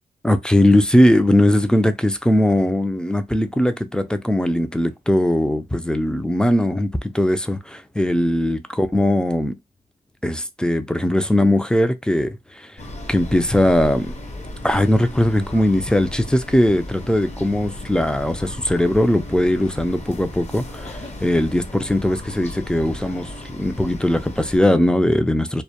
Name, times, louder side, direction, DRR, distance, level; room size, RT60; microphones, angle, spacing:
voice 1, 0.2-9.6 10.2-12.7 13.1-14.1 14.6-25.6, left 1 dB, 5° left, 0.3 m, -19 dB
sound 1, 12.8-24.6, left 1 dB, 40° left, 0.7 m, -35 dB
2.1 x 2.1 x 2.8 m
cardioid pair, 60°, 18 cm